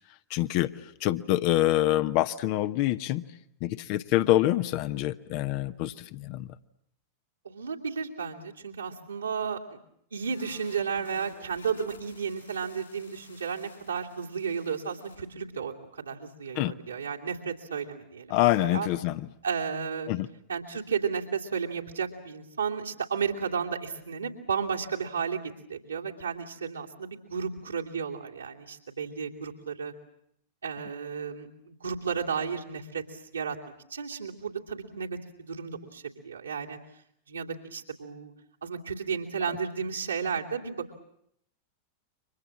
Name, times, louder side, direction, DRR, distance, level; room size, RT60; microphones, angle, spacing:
voice 1, 0.3-0.7 1.0-3.2 3.6-6.5 16.6-16.7 18.3-19.3 20.1-20.3, left 15 dB, 45° left, 11 dB, 1.0 m, -26 dB
voice 2, 7.4-9.8 10.1-18.4 18.7-18.9 19.4-20.1 20.5-25.4 25.7-29.9 30.6-36.8 37.3-38.3 38.6-41.0, right 6 dB, 75° right, -1 dB, 2.9 m, -33 dB
sound 1, 10.2-15.2, left 2 dB, 90° left, 6.2 m, -53 dB
29.5 x 25.0 x 7.4 m, 0.73 s
figure-of-eight pair, 90°, 0 cm